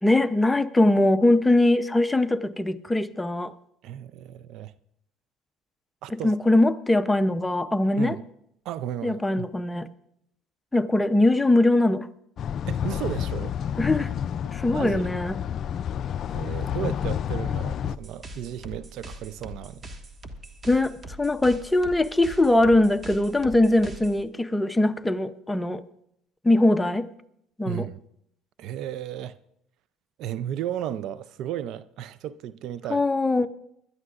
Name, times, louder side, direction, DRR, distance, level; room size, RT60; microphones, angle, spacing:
voice 1, 0.0-3.5 6.1-8.2 9.0-9.9 10.7-12.1 13.8-14.1 14.5-15.4 20.7-25.8 26.4-27.1 27.6-27.9 32.9-33.5, left 2 dB, 10° left, 0.7 m, -21 dB
voice 2, 3.8-4.7 6.0-6.3 8.0-8.2 8.6-9.5 12.7-13.6 14.7-15.1 16.3-19.9 27.7-28.0 28.6-29.4 30.2-33.0, right 11 dB, 65° right, 0.5 m, -34 dB
sound 1, 12.4-18.0, left 8 dB, 50° left, 0.4 m, -29 dB
sound 2, 17.8-24.2, right 1 dB, 30° right, 1.6 m, -42 dB
22.0 x 12.5 x 2.5 m
supercardioid pair, 80°, 0 cm